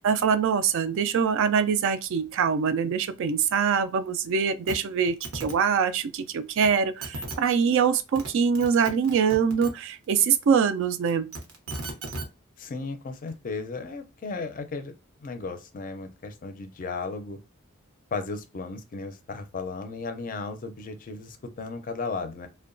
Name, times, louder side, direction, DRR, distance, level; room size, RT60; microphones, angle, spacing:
voice 1, 0.0-11.3, right 6 dB, 60° right, 0.3 m, -24 dB
sound 1, 4.7-4.8 5.0-5.5 6.6-6.7 7.0-7.4 7.9-8.3 8.5-9.7 11.1-12.3 13.3-13.4, right 2 dB, 85° right, 0.8 m, -35 dB
voice 2, 12.6-14.9 15.2-17.4 18.1-22.5, left 4 dB, 40° left, 0.4 m, -35 dB
2.7 x 2.2 x 2.5 m
head